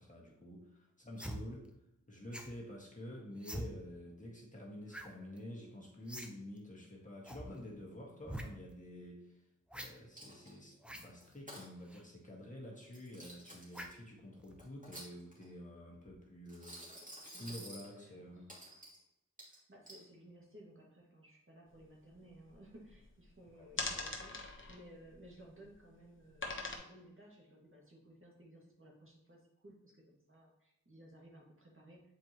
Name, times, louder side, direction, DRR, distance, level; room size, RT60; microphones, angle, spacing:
voice 1, 0.0-1.7 2.1-9.5 9.7-18.5 23.5-24.0, left 1 dB, 25° left, -3 dB, 1.8 m, -49 dB
sound 1, 1.2-1.4 2.3-2.6 3.4-3.7 4.9-5.1 5.4-5.5 6.1-6.3 6.6-6.7 7.2-7.5 8.2-8.5 9.7-9.9 10.8-11.1 11.9-12.0 13.7-14.0 14.5-14.6, equal, 5° right, 0.8 m, -44 dB
Coin (dropping), 10.2-10.7 11.2-11.7 12.8-13.9 14.6-15.5 16.5-17.9 18.5-19.0 19.4-20.0, right 1 dB, 25° right, 2.4 m, -51 dB
voice 2, 17.3-18.4 19.5-32.0, right 1 dB, 40° right, -3 dB, 1.9 m, -58 dB
sound 2, 21.8-21.9 22.1-23.3 23.7-25.7 26.4-26.8, left 3 dB, 40° left, 1.1 m, -41 dB
7.4 x 4.5 x 3.0 m, 0.86 s
cardioid pair, 50°, 31 cm